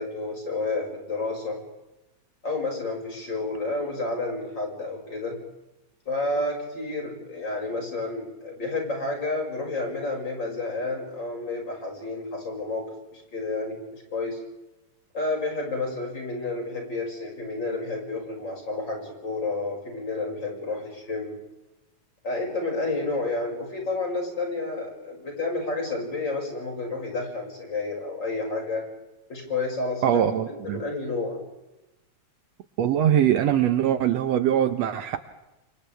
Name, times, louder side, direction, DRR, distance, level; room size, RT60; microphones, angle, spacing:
voice 1, 0.0-1.6 2.4-5.4 6.1-14.4 15.1-21.4 22.2-28.9 29.3-31.4, left 3 dB, 35° left, -1 dB, 6.5 m, -30 dB
voice 2, 30.0-30.8 32.8-35.4, right 10 dB, 70° right, 10 dB, 2.0 m, -22 dB
29.5 x 26.5 x 3.4 m, 0.99 s
omnidirectional pair, 3.3 m